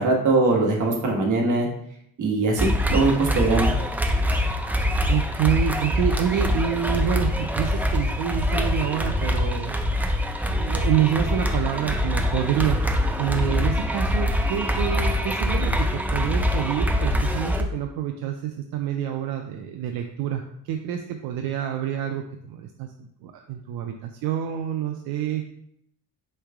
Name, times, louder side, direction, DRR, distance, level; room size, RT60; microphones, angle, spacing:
voice 1, 0.0-1.7 2.2-3.7, right 3 dB, 55° right, 0 dB, 1.3 m, -21 dB
sound 1, 2.6-17.6, left 1 dB, 5° right, 0.4 m, -24 dB
voice 2, 5.1-9.7 10.5-12.9 13.2-25.5, right 9 dB, 85° right, 4 dB, 0.5 m, -27 dB
4.7 x 3.3 x 3.4 m, 0.73 s
cardioid pair, 120°, 36 cm